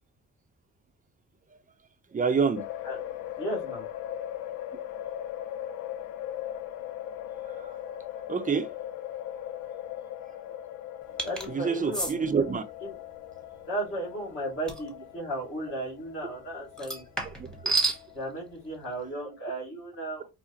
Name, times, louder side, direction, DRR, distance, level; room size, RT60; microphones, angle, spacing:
voice 1, 2.1-2.6 7.6-7.7 8.3-8.7 11.5-12.6 17.6-17.7, right 5 dB, 25° right, 0.6 m, -27 dB
sound 1, 2.6-19.5, left 11 dB, 90° left, 0.5 m, -40 dB
voice 2, 3.4-3.9 11.2-12.2 12.8-13.0 13.7-17.0 18.1-20.3, right 1 dB, 45° left, 2.3 m, -35 dB
sound 2, 11.2-11.5 11.9-12.1 14.7-14.9 16.8-18.0, right 3 dB, ahead, 1.2 m, -29 dB
4.7 x 2.1 x 2.8 m
cardioid pair, 90°, 30 cm